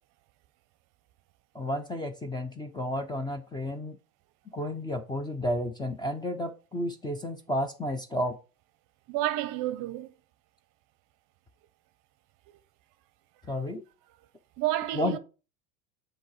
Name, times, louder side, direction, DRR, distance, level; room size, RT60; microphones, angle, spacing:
voice 1, 1.5-4.0 4.5-8.4 13.5-13.8 14.9-15.2, left 1 dB, 10° left, 0.5 m, -32 dB
voice 2, 9.1-10.1 14.6-15.2, right 14 dB, 45° right, 0.6 m, -30 dB
7.5 x 2.9 x 4.7 m
supercardioid pair, 115°, 44 cm